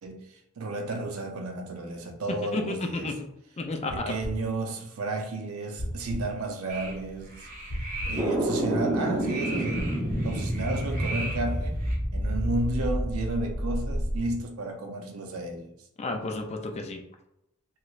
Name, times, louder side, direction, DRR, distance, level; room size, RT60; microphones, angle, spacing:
voice 1, 0.0-3.1 3.9-7.5 7.8-9.9 10.2-11.8 12.1-15.7, right 2 dB, 85° right, 0.6 m, -32 dB
voice 2, 2.5-3.3 3.6-4.1 16.0-17.0, left 2 dB, 30° left, 0.4 m, -32 dB
sound 1, 3.9-4.4 5.8-6.2 7.7-8.2 9.8-10.3 11.9-12.4 13.9-14.4, equal, 50° left, 0.9 m, -35 dB
sound 2, 6.7-12.0, right 2 dB, 40° right, 0.8 m, -39 dB
sound 3, 8.1-14.2, right 1 dB, 15° right, 0.7 m, -29 dB
3.1 x 3.0 x 2.3 m
head